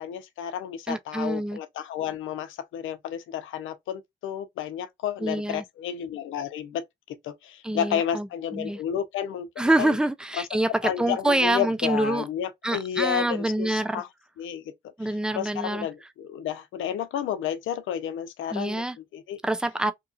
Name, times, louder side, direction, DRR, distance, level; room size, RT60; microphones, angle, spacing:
voice 1, 0.0-9.5 9.8-10.0 10.4-10.5 10.8-14.1 14.4-14.7 15.0-18.8 19.1-19.4, left 9 dB, 80° left, 0.6 m, -31 dB
voice 2, 0.9-1.6 5.2-5.6 7.6-8.8 9.6-12.2 12.6-14.0 15.0-15.9 18.5-19.0 19.4-19.9, right 1 dB, 5° right, 0.3 m, -26 dB
2.9 x 2.3 x 2.6 m
cardioid pair, 90°, 20 cm